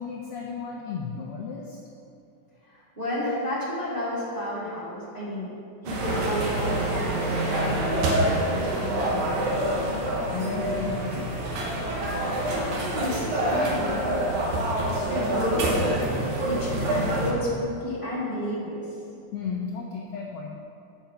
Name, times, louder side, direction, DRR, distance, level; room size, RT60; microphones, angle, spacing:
voice 1, 0.0-1.8 10.3-11.4 19.3-20.6, left 5 dB, 85° left, -1 dB, 1.3 m, -33 dB
voice 2, 2.6-5.5 5.8-9.7 12.5-14.2 14.9-18.9, left 1 dB, 25° right, -9 dB, 1.3 m, -32 dB
sound 1, 5.9-17.3, right 1 dB, 75° right, 2.3 m, -26 dB
8.2 x 5.7 x 5.7 m, 2.6 s
omnidirectional pair, 3.4 m